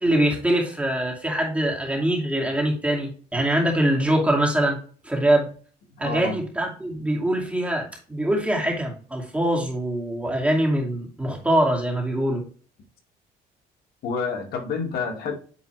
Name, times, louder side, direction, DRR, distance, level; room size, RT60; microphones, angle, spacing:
voice 1, 0.0-4.8 5.0-5.5 6.0-12.4, right 1 dB, 5° right, 2.5 m, -23 dB
voice 2, 6.0-6.4 14.0-15.4, left 5 dB, 65° left, 2.0 m, -28 dB
9.0 x 3.8 x 3.3 m
cardioid pair, 110°, 17 cm